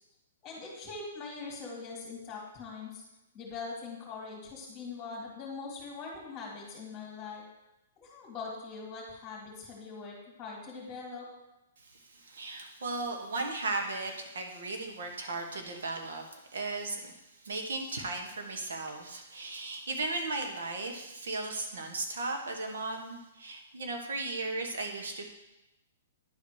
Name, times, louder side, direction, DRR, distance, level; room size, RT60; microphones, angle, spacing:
voice 1, 0.4-3.0 3.3-7.4 8.0-11.3, left 4 dB, 15° left, -3 dB, 2.3 m, -42 dB
voice 2, 11.8-25.3, right 3 dB, 80° right, 3 dB, 1.5 m, -36 dB
10.5 x 4.2 x 4.9 m, 0.94 s
hypercardioid pair, 150°, 0 cm